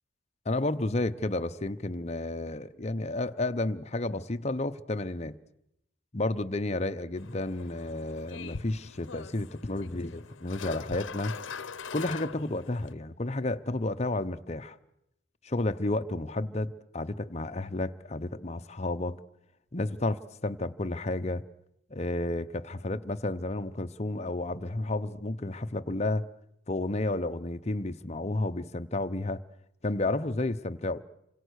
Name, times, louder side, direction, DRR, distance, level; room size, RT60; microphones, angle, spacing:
voice 1, 0.4-5.3 6.1-11.4 11.9-14.8 15.4-19.2 19.7-21.4 21.9-26.2 26.7-29.4 29.8-31.0, left 2 dB, 35° left, 0.9 m, -31 dB
sound 1, 7.2-12.9, left 5 dB, 75° left, 0.9 m, -42 dB
28.0 x 25.5 x 6.5 m
head